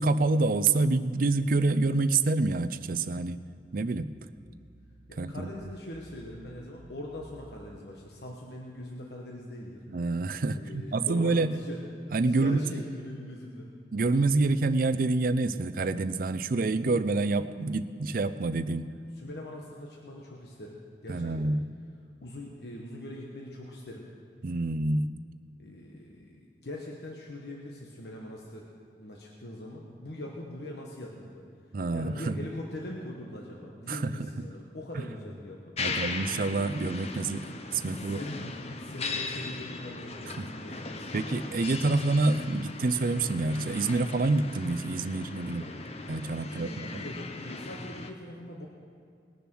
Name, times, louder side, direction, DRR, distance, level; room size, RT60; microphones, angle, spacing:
voice 1, 0.0-3.4 3.7-4.1 5.2-5.5 9.9-11.6 12.1-12.6 13.9-18.9 21.1-21.7 24.4-25.1 31.7-32.4 33.9-34.2 35.8-38.2 40.4-40.5 41.1-45.7 46.1-47.0, right 3 dB, 55° right, 13 dB, 0.5 m, -27 dB
sound 1, 4.4-7.8, right 1 dB, 5° right, 1.6 m, -55 dB
voice 2, 5.1-9.8 10.5-11.8 12.3-13.8 19.1-21.5 22.2-24.1 25.6-28.7 29.0-31.5 31.9-36.1 37.8-41.1 46.4-48.7, left 1 dB, 65° left, -1 dB, 1.2 m, -42 dB
sound 2, 35.8-48.1, left 3 dB, 35° left, 0.8 m, -38 dB
20.0 x 6.9 x 6.1 m, 2.3 s
head